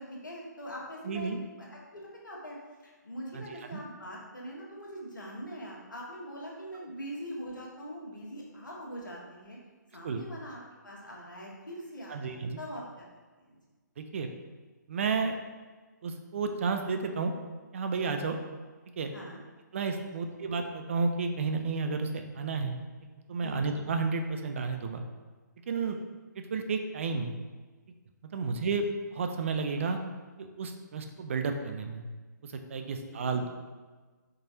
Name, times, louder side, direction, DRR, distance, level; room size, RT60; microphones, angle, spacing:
voice 1, 0.0-2.6 2.8-9.6 9.9-13.1 13.4-13.6 18.2-18.4 19.1-19.4 20.1-20.3 23.4-23.7 25.9-26.0 32.7-33.5, equal, 80° left, -3 dB, 1.2 m, -43 dB
voice 2, 1.1-1.4 3.3-3.4 3.7-3.8 10.0-10.2 12.1-12.6 14.0-14.3 14.9-15.4 16.0-17.3 17.7-18.4 19.0-19.1 19.7-22.8 23.3-25.0 25.7-26.0 26.4-27.3 28.3-30.0 30.4-32.1 32.4-33.5, right 4 dB, 40° right, 6 dB, 0.4 m, -31 dB
4.4 x 3.1 x 2.7 m, 1.3 s
figure-of-eight pair, 140°, 10 cm